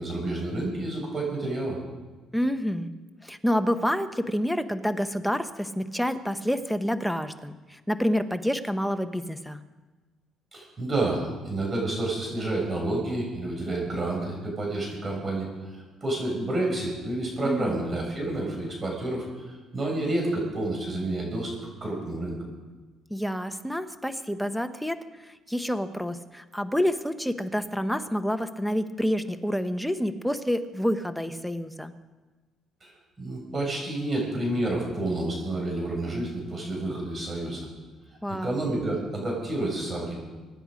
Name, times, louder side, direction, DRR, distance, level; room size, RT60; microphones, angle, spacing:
voice 1, 0.0-1.8 10.5-19.3 19.7-22.4 32.8-32.9 33.2-37.7 38.3-40.1, right 2 dB, 30° right, -2 dB, 7.2 m, -29 dB
voice 2, 2.3-2.9 3.2-9.6 17.4-17.8 23.1-31.9 38.2-38.6, equal, ahead, 8 dB, 1.0 m, -28 dB
25.0 x 10.0 x 5.2 m, 1.3 s
cardioid pair, 110°, 0 cm